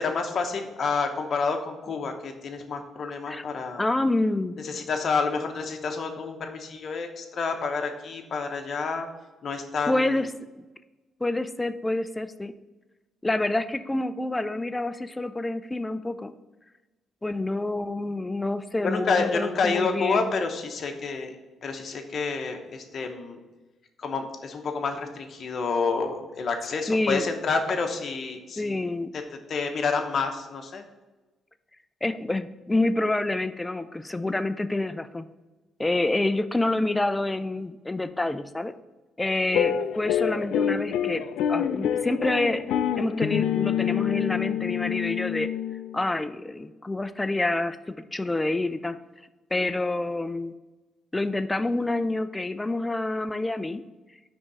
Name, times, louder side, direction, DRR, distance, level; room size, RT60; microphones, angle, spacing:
voice 1, 0.0-3.9 4.6-9.1 9.4-10.3 18.8-21.3 21.6-23.4 24.0-28.7 29.1-29.2 29.5-30.8, left 4 dB, 55° left, 4 dB, 0.8 m, -29 dB
voice 2, 3.8-4.6 9.9-10.3 10.5-10.6 11.2-12.5 13.2-16.3 17.2-20.3 26.9-27.3 28.6-29.1 32.0-35.3 35.8-38.7 39.2-42.6 43.0-45.5 45.9-49.0 49.5-50.5 51.1-53.8, left 2 dB, 15° left, 12 dB, 0.4 m, -27 dB
sound 1, 39.5-46.1, left 9 dB, 85° left, 0.4 m, -27 dB
5.0 x 3.6 x 5.5 m, 1.2 s
cardioid pair, 90°, 0 cm